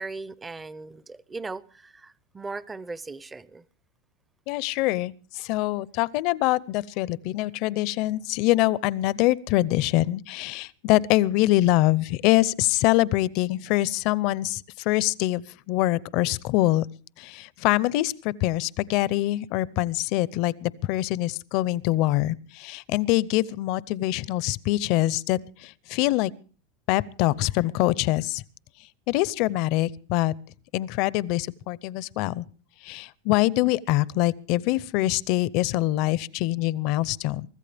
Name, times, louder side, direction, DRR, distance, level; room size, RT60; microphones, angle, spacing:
voice 1, 0.0-3.6, right 3 dB, 15° right, 0.7 m, -38 dB
voice 2, 4.5-5.1 5.4-14.6 14.9-15.4 15.7-16.9 17.2-26.3 26.9-28.4 29.1-30.3 30.7-32.4 32.9-37.5, left 17 dB, 55° left, 0.6 m, -24 dB
24.0 x 14.0 x 3.4 m
supercardioid pair, 130°, 0 cm